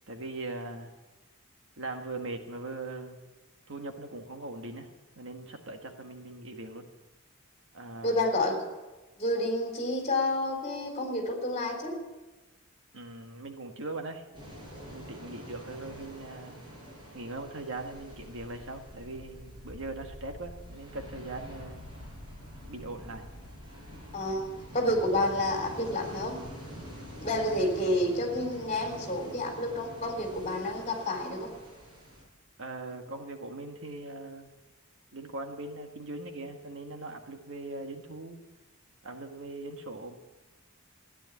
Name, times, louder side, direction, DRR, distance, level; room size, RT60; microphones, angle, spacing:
voice 1, 0.1-0.9 1.8-3.2 3.7-4.9 5.2-6.8 7.7-8.2 12.9-14.2 14.9-16.6 17.1-21.8 22.6-23.3 32.6-34.5 35.1-38.4 39.0-40.1, right 2 dB, 65° right, 4 dB, 1.6 m, -40 dB
voice 2, 8.0-8.6 9.2-12.0 24.1-26.4 27.2-31.5, left 1 dB, 35° left, 2 dB, 3.6 m, -29 dB
sound 1, 14.3-32.2, equal, 20° right, 5.5 m, -46 dB
15.5 x 10.0 x 8.3 m, 1.2 s
head